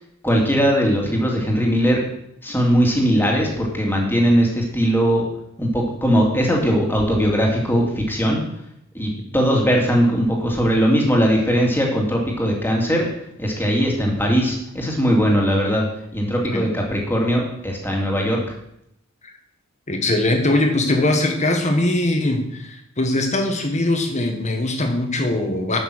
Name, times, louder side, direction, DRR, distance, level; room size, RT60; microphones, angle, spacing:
voice 1, 0.2-2.0 2.4-5.2 5.6-8.4 8.9-13.1 13.4-15.8 16.1-18.5, equal, 10° left, -1 dB, 2.6 m, -19 dB
voice 2, 19.9-25.8, left 1 dB, 35° left, 4 dB, 1.7 m, -21 dB
11.5 x 6.5 x 6.3 m, 0.77 s
head